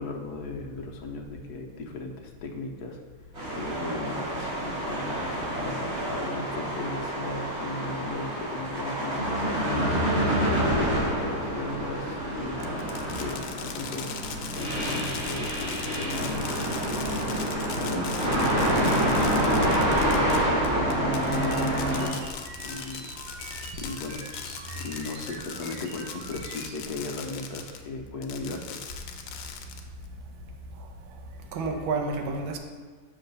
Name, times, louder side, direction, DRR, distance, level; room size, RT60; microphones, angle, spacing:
voice 1, 0.0-3.0 3.5-5.0 5.5-10.0 10.6-12.8 13.2-14.1 14.5-17.0 17.8-19.3 19.6-22.2 22.6-23.1 23.8-24.2 24.8-28.8, left 3 dB, 65° left, 2 dB, 1.1 m, -36 dB
sound 1, 3.3-22.0, right 1 dB, 35° right, 2.1 m, -27 dB
Fireworks, 12.6-27.8 28.2-30.1, left 7 dB, 85° left, 1.4 m, -40 dB
sound 2, 21.3-26.8, right 4 dB, 70° right, 1.2 m, -45 dB
voice 2, 30.7-31.2 31.5-32.6, right 3 dB, 85° right, 3 dB, 1.5 m, -31 dB
6.6 x 3.9 x 5.3 m, 1.5 s
omnidirectional pair, 2.1 m